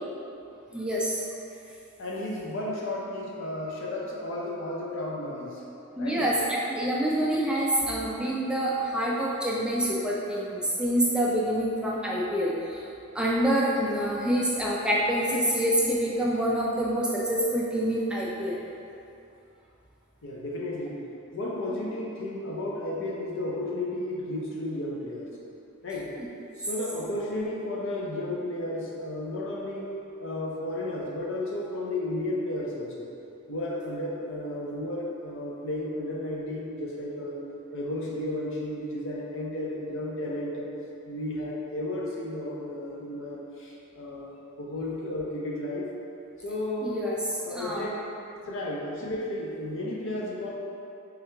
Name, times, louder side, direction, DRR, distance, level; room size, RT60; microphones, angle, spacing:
voice 1, 0.7-1.2 6.0-12.9 13.1-18.6 26.2-26.3 46.8-47.1 47.5-47.9, right 1 dB, 5° right, -5 dB, 0.3 m, -26 dB
voice 2, 2.0-5.6 6.0-6.3 20.2-21.0 21.3-25.3 25.8-26.2 26.6-33.1 33.5-37.4 37.7-40.7 41.1-45.9 46.4-47.0 47.4-48.0 48.5-50.5, left 1 dB, 65° left, -3 dB, 0.6 m, -33 dB
3.5 x 3.1 x 3.3 m, 2.7 s
head